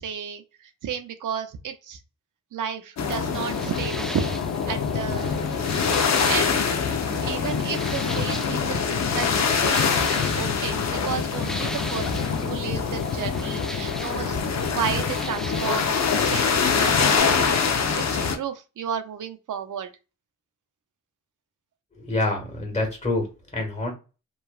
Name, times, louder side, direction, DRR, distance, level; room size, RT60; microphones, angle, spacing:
voice 1, 0.0-2.0 2.5-5.4 6.2-6.9 7.2-14.4 14.7-16.0 16.2-17.7 17.9-19.9, right 8 dB, 70° right, 8 dB, 0.6 m, -33 dB
sound 1, 3.0-18.4, left 6 dB, 55° left, 0.6 m, -24 dB
sound 2, 3.3-17.2, equal, ahead, 0.3 m, -39 dB
voice 2, 21.9-23.2 23.5-23.9, left 2 dB, 20° left, 1 dB, 1.5 m, -26 dB
3.0 x 2.3 x 2.3 m, 0.30 s
cardioid pair, 55°, 32 cm